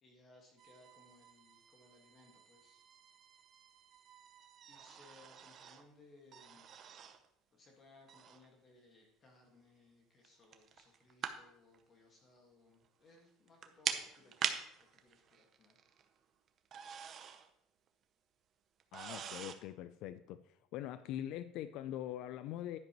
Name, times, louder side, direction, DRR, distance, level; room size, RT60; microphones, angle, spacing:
voice 1, 0.0-2.8 4.7-6.7 7.5-15.8, left 2 dB, 25° left, 1 dB, 1.7 m, -64 dB
sound 1, 0.6-5.9 6.3-7.3 8.1-8.5 10.2-11.4 11.7-11.8 13.2-13.3 13.5-16.2 16.5-17.5 17.9-18.0 18.8-19.5, right 8 dB, 35° right, 0.7 m, -44 dB
voice 2, 18.9-20.4 20.7-22.8, left 12 dB, 55° left, 13 dB, 0.3 m, -43 dB
10.5 x 10.5 x 3.0 m, 0.74 s
cardioid pair, 165°, 0 cm